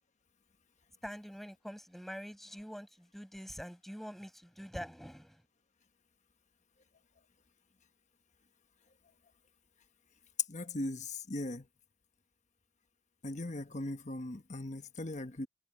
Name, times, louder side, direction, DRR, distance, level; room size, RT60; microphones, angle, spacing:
voice 1, 1.0-5.4, equal, ahead, 7.6 m, -45 dB
voice 2, 10.5-11.6 13.2-15.5, left 1 dB, 35° left, 1.2 m, -39 dB
head